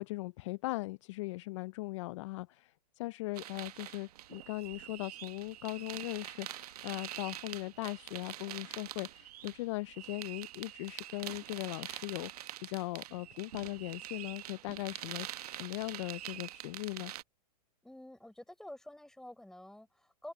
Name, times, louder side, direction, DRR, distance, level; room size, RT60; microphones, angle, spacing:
voice 1, 0.0-17.1, left 22 dB, 45° left, 0.4 m, -39 dB
sound 1, 3.4-17.2, right 13 dB, 65° right, 1.1 m, -45 dB
voice 2, 17.8-20.3, left 1 dB, ahead, 4.4 m, -49 dB
open air
hypercardioid pair, 130°, 21 cm